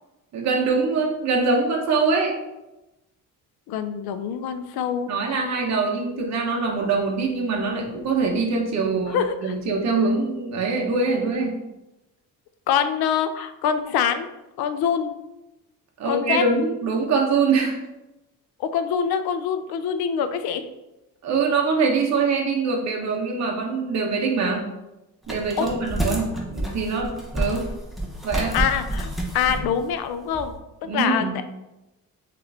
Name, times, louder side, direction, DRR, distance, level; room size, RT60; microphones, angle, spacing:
voice 1, 0.3-2.4 5.1-11.5 16.0-17.8 21.2-24.7 25.3-27.7 28.2-28.6 30.8-31.3, right 4 dB, 45° right, 0 dB, 0.8 m, -23 dB
voice 2, 3.7-5.1 9.1-9.5 12.7-14.3 14.6-15.1 16.1-16.4 18.6-20.6 25.6-25.7 28.5-29.1 29.3-30.5 30.8-31.3, left 8 dB, 80° left, 10 dB, 0.5 m, -24 dB
sound 1, 25.2-30.5, right 1 dB, ahead, 0.7 m, -29 dB
5.6 x 2.5 x 3.3 m, 0.97 s
cardioid pair, 140°, 37 cm